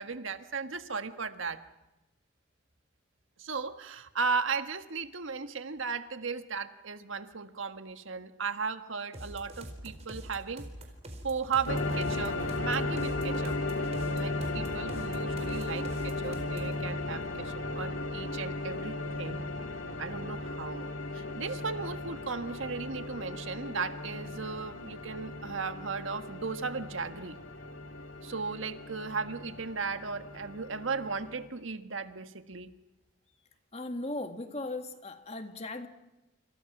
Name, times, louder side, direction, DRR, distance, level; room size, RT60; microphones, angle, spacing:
voice 1, 0.0-1.6 3.4-10.7 11.2-13.6 14.1-19.5 20.0-27.4 28.2-32.7, right 5 dB, 80° right, 9 dB, 1.6 m, -36 dB
sound 1, 9.1-16.8, right 1 dB, 30° right, 4.2 m, -44 dB
sound 2, 11.7-31.5, left 2 dB, 80° left, 2.6 m, -36 dB
voice 2, 33.7-35.9, left 2 dB, 30° left, 7 dB, 2.0 m, -37 dB
28.5 x 28.0 x 6.1 m, 0.97 s
head